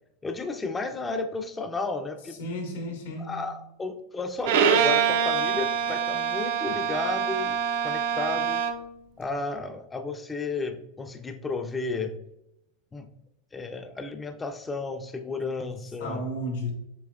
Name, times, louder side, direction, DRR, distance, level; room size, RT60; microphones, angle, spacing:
voice 1, 0.2-2.4 3.2-8.6 9.2-12.2 12.9-13.1 13.5-16.2, left 3 dB, 15° left, 0.4 m, -32 dB
voice 2, 2.4-3.5 16.0-16.7, left 1 dB, 90° left, 1.5 m, -33 dB
Bowed string instrument, 4.4-8.9, right 8 dB, 70° right, 0.5 m, -25 dB
7.0 x 2.8 x 2.3 m
supercardioid pair, 125°, 0 cm